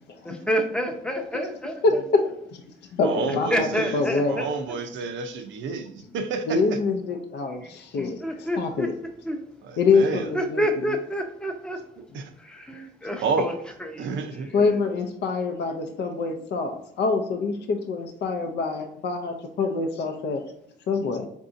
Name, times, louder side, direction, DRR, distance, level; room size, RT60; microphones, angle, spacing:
voice 1, 0.2-1.8 3.5-4.8 7.5-8.9 9.2-9.4 10.3-11.8 12.4-13.5 13.8-14.8, equal, 5° left, 4 dB, 0.6 m, -29 dB
voice 2, 1.8-2.2 2.5-2.6 2.9-3.7 3.9-4.4 6.5-8.2 8.6-8.9 9.8-10.6 14.5-20.4 20.9-21.3, left 4 dB, 60° left, 5 dB, 0.5 m, -25 dB
voice 3, 3.0-4.0 4.3-6.8 9.6-10.3 12.1-12.2 13.2-13.5 14.0-14.5, right 4 dB, 75° right, 7 dB, 0.6 m, -29 dB
4.6 x 2.7 x 2.5 m, 0.75 s
cardioid pair, 90°, 20 cm